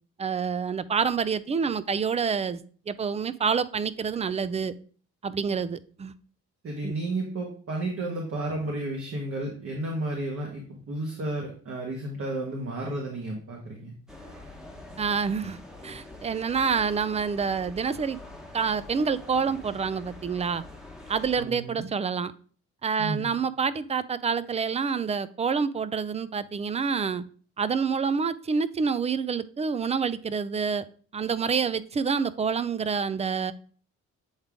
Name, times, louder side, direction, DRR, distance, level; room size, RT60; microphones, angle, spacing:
voice 1, 0.2-2.6 2.9-4.7 5.2-6.1 6.8-6.9 15.0-15.6 15.8-18.2 18.5-20.6 21.1-22.3 22.8-27.2 27.6-30.8 31.1-33.5, right 6 dB, 20° right, 16 dB, 0.4 m, -27 dB
voice 2, 6.6-13.9 21.4-21.9 23.0-23.3, right 2 dB, 50° right, -1 dB, 1.4 m, -32 dB
sound 1, 14.1-21.4, left 2 dB, ahead, 1.1 m, -45 dB
8.0 x 3.7 x 3.5 m, 0.44 s
cardioid pair, 90°, 30 cm